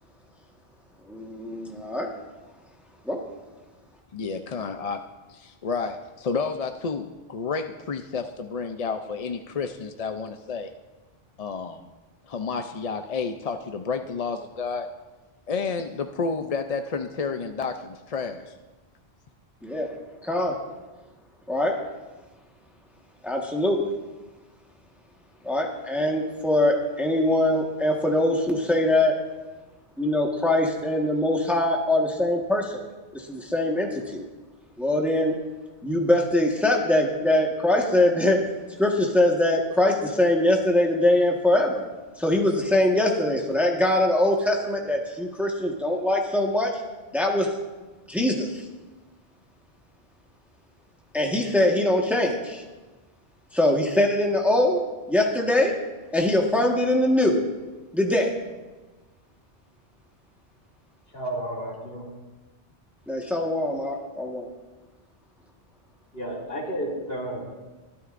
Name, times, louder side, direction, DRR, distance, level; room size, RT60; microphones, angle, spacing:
voice 1, 1.1-2.1 3.0-3.2 19.6-19.9 20.2-20.6 21.5-21.7 23.2-23.9 25.4-29.2 30.0-32.8 33.1-34.2 34.8-35.4 35.8-38.4 38.8-41.8 42.2-46.8 47.1-47.5 48.1-48.6 51.1-52.6 53.5-54.8 55.1-55.7 56.1-57.4 57.9-58.3 63.1-64.5, left 1 dB, ahead, 0 dB, 1.4 m, -22 dB
voice 2, 4.1-5.0 5.3-10.7 11.4-11.9 12.3-14.9 15.5-18.5, left 5 dB, 45° left, 6 dB, 0.5 m, -30 dB
voice 3, 61.1-62.1 66.1-67.4, right 1 dB, 65° left, -3 dB, 3.1 m, -32 dB
22.5 x 12.5 x 2.6 m, 1.2 s
omnidirectional pair, 1.1 m